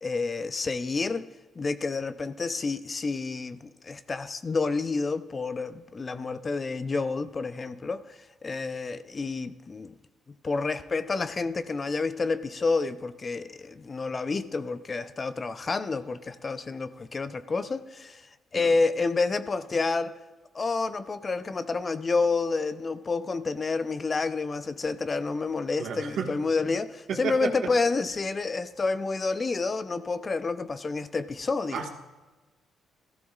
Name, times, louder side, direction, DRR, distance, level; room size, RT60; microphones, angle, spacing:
voice 1, 0.0-1.3 1.6-9.9 10.4-18.3 18.5-20.1 20.5-31.9, left 4 dB, 35° left, 0.5 m, -29 dB
voice 2, 25.8-26.3 27.1-27.5 31.7-31.9, right 7 dB, 70° right, 1.5 m, -31 dB
14.0 x 14.0 x 2.4 m
cardioid pair, 90°, 0 cm